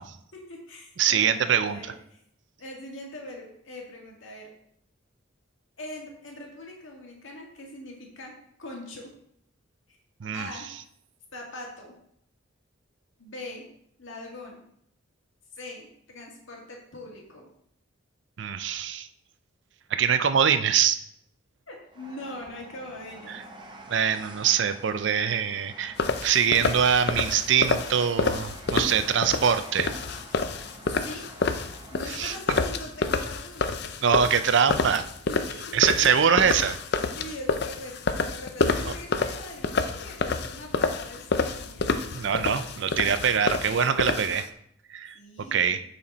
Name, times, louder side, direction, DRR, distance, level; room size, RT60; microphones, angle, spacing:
voice 1, 0.3-2.2 2.6-4.5 5.8-8.3 8.6-9.1 10.3-10.7 11.3-11.9 13.2-13.7 14.0-14.6 15.6-17.5 21.7-23.4 30.9-31.3 31.9-33.6 35.3-36.3 37.1-41.9 45.1-45.8, left 1 dB, 70° left, -1 dB, 1.9 m, -42 dB
voice 2, 1.0-1.9 10.2-10.5 18.4-19.1 19.9-21.0 23.3-23.4 23.9-25.9 26.2-29.9 32.1-32.3 34.0-35.0 35.7-36.8 38.9-39.0 42.1-44.5 44.9-45.8, right 7 dB, 60° right, 11 dB, 0.4 m, -23 dB
Train, 21.9-32.4, right 2 dB, 20° right, 0.8 m, -47 dB
sound 1, 26.0-44.5, left 4 dB, 50° left, 0.5 m, -28 dB
8.6 x 4.3 x 4.2 m, 0.71 s
head